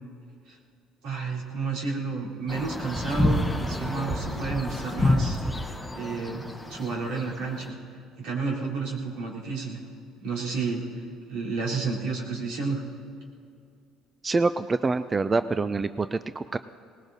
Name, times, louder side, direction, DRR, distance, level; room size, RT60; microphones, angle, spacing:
voice 1, 1.0-5.4 5.9-6.4 6.7-7.8 8.2-9.8 10.2-10.8 11.3-12.8, right 4 dB, 75° right, -5 dB, 3.6 m, -31 dB
sound 1, 2.5-7.6, left 1 dB, 5° left, 1.0 m, -28 dB
voice 2, 14.2-16.6, right 3 dB, 20° right, 12 dB, 0.3 m, -26 dB
20.5 x 19.5 x 2.7 m, 2.5 s
cardioid pair, 125°, 0 cm